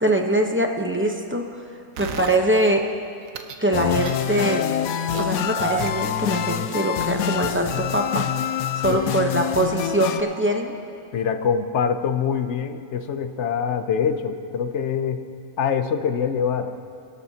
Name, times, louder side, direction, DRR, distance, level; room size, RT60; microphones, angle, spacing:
voice 1, 0.0-1.6 2.0-2.9 3.6-4.7 5.2-8.2 8.8-10.7, right 1 dB, 10° right, 2 dB, 0.7 m, -23 dB
sound 1, 2.0-2.7 3.3-3.6 4.0-4.6 5.1-6.9 7.2-7.3, right 7 dB, 75° right, 1.2 m, -32 dB
sound 2, 3.7-10.2, left 10 dB, 85° left, 1.1 m, -26 dB
voice 2, 11.1-15.3 15.6-16.7, left 7 dB, 60° left, 9 dB, 0.9 m, -24 dB
23.0 x 12.5 x 2.8 m, 2.4 s
omnidirectional pair, 1.5 m